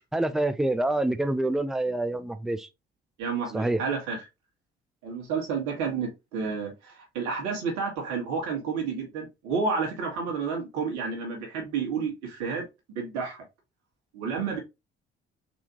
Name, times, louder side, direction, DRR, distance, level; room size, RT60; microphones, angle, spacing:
voice 1, 0.1-2.7 3.5-3.8, right 1 dB, ahead, 0.5 m, -26 dB
voice 2, 3.2-4.2 5.0-12.7 13.0-13.4 14.1-14.6, right 5 dB, 70° right, 1.6 m, -30 dB
4.2 x 2.8 x 2.9 m
hypercardioid pair, 50°, 29 cm